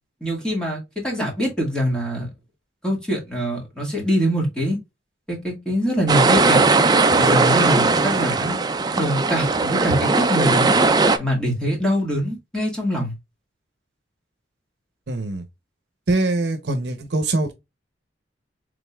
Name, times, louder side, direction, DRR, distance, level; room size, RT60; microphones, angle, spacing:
voice 1, 0.2-2.3 2.8-4.8 5.3-6.6 7.2-8.6 9.0-10.8 11.2-13.1, equal, 5° left, 1.9 m, -23 dB
sound 1, 6.1-11.2, right 3 dB, 20° right, 0.4 m, -18 dB
voice 2, 15.1-15.4 16.1-17.5, right 2 dB, 60° right, 0.9 m, -23 dB
5.2 x 3.6 x 2.3 m
head